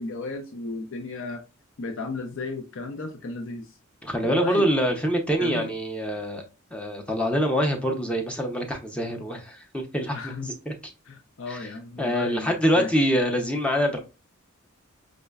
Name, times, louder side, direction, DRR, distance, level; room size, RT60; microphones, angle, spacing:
voice 1, 0.0-1.4 1.8-3.8 4.2-4.7 5.4-5.7 10.1-10.5 11.1-12.9, left 3 dB, 65° left, 0.5 m, -34 dB
voice 2, 4.0-6.4 6.7-10.7 11.5-11.6 12.0-14.0, equal, 5° left, 0.5 m, -25 dB
5.0 x 2.1 x 2.2 m
head